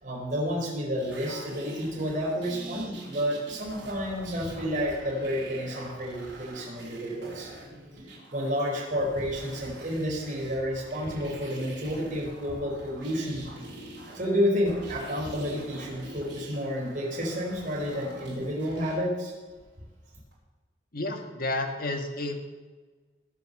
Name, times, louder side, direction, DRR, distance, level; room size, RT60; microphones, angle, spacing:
voice 1, 0.0-7.5 8.3-13.5 14.1-19.3, equal, 45° right, -2 dB, 4.3 m, -30 dB
sound 1, 1.0-18.9 20.3-20.4, right 2 dB, 70° right, 4.5 m, -45 dB
voice 2, 20.9-22.5, left 2 dB, 50° left, 5 dB, 1.7 m, -31 dB
20.0 x 6.9 x 6.6 m, 1.3 s
head